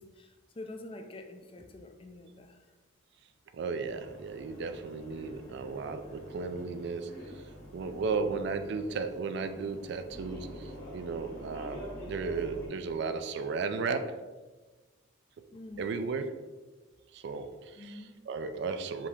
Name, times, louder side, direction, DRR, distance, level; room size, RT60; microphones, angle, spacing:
voice 1, 0.0-2.7 15.5-15.8 17.8-18.1, left 2 dB, 25° left, 5 dB, 0.3 m, -46 dB
voice 2, 3.5-7.2 7.7-14.2 15.8-16.4 17.1-19.1, right 4 dB, 55° right, 9 dB, 0.3 m, -35 dB
sound 1, 3.8-12.7, equal, 50° left, 1.2 m, -46 dB
5.0 x 2.7 x 3.6 m, 1.3 s
head